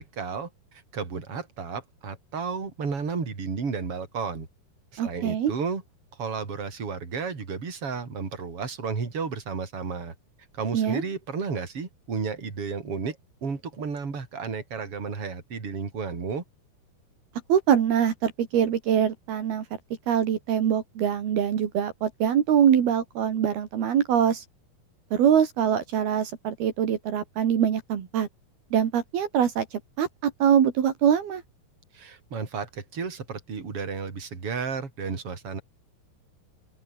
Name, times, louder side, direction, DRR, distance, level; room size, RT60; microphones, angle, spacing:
voice 1, 0.0-4.5 4.9-5.8 6.1-10.1 10.5-16.4 31.9-35.6, right 5 dB, 35° right, 5.0 m, -33 dB
voice 2, 5.0-5.5 10.7-11.0 17.5-19.6 20.1-24.4 25.1-28.3 28.7-31.4, right 9 dB, 70° right, 4.4 m, -23 dB
open air
omnidirectional pair, 4.6 m